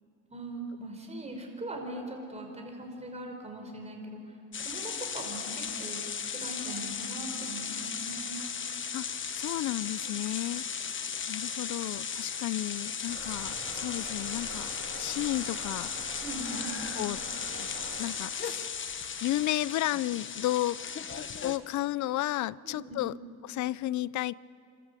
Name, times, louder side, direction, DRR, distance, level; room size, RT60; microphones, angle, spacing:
voice 1, 0.3-6.0 6.3-8.4 10.0-10.1 16.2-16.7 22.6-23.1, right 1 dB, 20° right, 2 dB, 5.0 m, -40 dB
sound 1, 4.5-21.6, left 6 dB, 40° left, 1.2 m, -36 dB
voice 2, 8.9-10.7 11.3-14.7 15.0-15.9 17.0-17.2 17.6-17.7 18.0-18.7 19.2-20.8 21.4-23.1 23.5-24.3, left 15 dB, 70° left, 21 dB, 0.5 m, -32 dB
sound 2, 13.1-18.1, right 3 dB, 50° right, 5.5 m, -45 dB
26.5 x 13.5 x 8.2 m, 2.4 s
cardioid pair, 90°, 30 cm